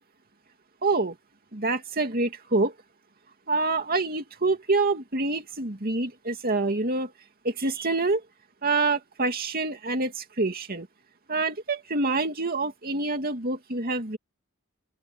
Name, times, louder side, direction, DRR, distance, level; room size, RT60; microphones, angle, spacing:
voice 1, 0.8-1.2 1.5-2.7 3.5-7.1 7.4-8.2 8.6-10.9 11.3-14.2, right 3 dB, 45° right, 2.7 m, -26 dB
open air
head